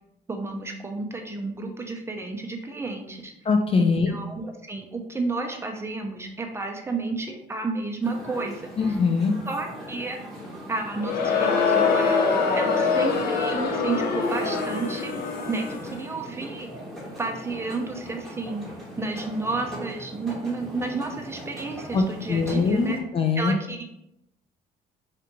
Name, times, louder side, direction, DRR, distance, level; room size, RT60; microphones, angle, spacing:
voice 1, 0.3-3.3 3.8-8.7 9.5-10.2 10.7-15.1 15.5-16.7 17.2-18.6 19.0-23.0 23.4-23.8, right 3 dB, 15° right, 2 dB, 0.6 m, -31 dB
voice 2, 3.5-4.1 8.8-9.4 21.9-23.5, left 4 dB, 35° left, 5 dB, 0.4 m, -22 dB
sound 1, 8.0-23.0, equal, ahead, 1.0 m, -40 dB
Crowd, 11.0-16.0, left 5 dB, 65° left, 0.7 m, -24 dB
4.4 x 2.5 x 3.0 m, 0.82 s
cardioid pair, 110°, 17 cm